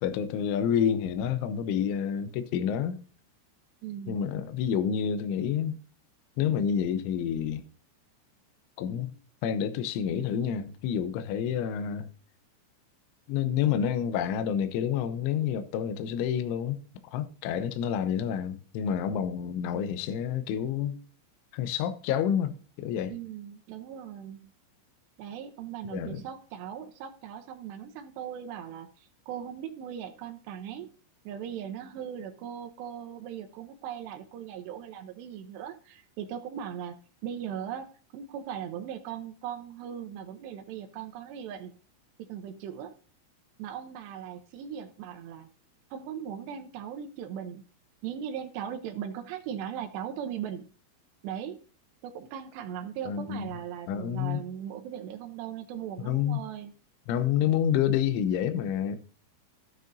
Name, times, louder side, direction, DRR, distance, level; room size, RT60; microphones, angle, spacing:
voice 1, 0.0-3.0 4.1-5.8 6.4-7.6 8.8-9.1 9.4-12.1 13.3-16.8 17.1-21.0 21.5-23.1 25.9-26.2 53.1-53.5 53.9-54.4 56.0-56.4 57.1-59.0, left 8 dB, 80° left, 3.1 m, -28 dB
voice 2, 3.8-4.2 23.1-24.5 25.2-30.9 31.3-37.0 37.2-41.7 42.2-42.9 43.6-45.5 45.9-47.6 48.0-50.6 51.2-51.6 52.0-56.7, right 9 dB, 80° right, 2.5 m, -39 dB
13.0 x 9.4 x 2.7 m
omnidirectional pair, 5.9 m